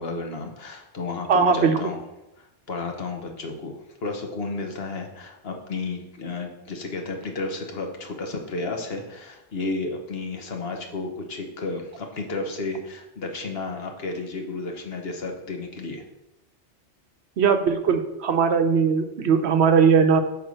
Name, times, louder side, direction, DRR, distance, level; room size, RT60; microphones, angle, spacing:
voice 1, 0.0-2.0 2.4-16.0, left 3 dB, 60° left, 3 dB, 1.3 m, -32 dB
voice 2, 1.3-1.8 17.4-20.2, right 6 dB, 70° right, 7 dB, 0.9 m, -19 dB
8.7 x 3.6 x 6.3 m, 0.92 s
omnidirectional pair, 1.2 m